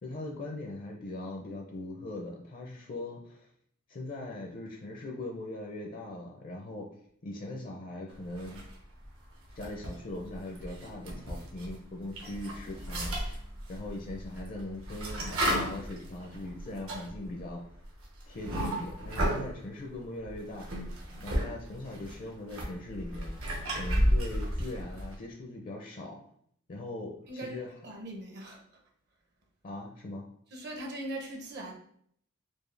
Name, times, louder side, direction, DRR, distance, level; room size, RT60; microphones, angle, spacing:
voice 1, 0.0-3.5 3.9-6.9 7.2-8.6 9.6-13.4 13.7-17.6 18.3-20.9 21.2-23.3 23.7-26.3 26.7-27.7 29.6-30.3, left 2 dB, 40° left, 1 dB, 0.5 m, -40 dB
sound 1, 8.3-9.0 9.5-11.8 12.1-19.5 20.2-21.5 21.7-25.1, equal, 75° right, 1.1 m, -33 dB
voice 2, 27.3-28.6 30.5-31.7, right 1 dB, 50° right, 1 dB, 0.8 m, -40 dB
4.5 x 2.4 x 3.2 m, 0.66 s
head